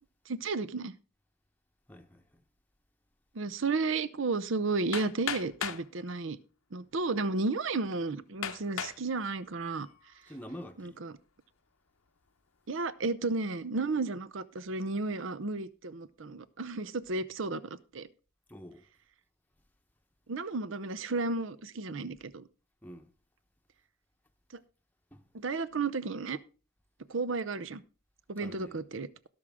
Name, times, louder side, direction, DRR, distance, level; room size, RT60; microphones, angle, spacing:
voice 1, 0.3-0.9 3.3-6.4 6.7-9.9 10.8-11.1 12.7-18.1 20.3-22.5 25.3-26.4 27.1-27.8 28.3-29.1, right 3 dB, 70° right, 0.7 m, -33 dB
voice 2, 1.9-2.4 10.3-11.0 18.5-18.8 22.8-23.1 25.1-25.3 28.4-28.8, equal, 10° left, 0.9 m, -47 dB
Hammer, 4.9-5.9 6.8-6.9 7.5-7.6 8.4-9.0 9.6-10.0, left 8 dB, 90° left, 0.9 m, -36 dB
17.5 x 6.2 x 3.6 m
head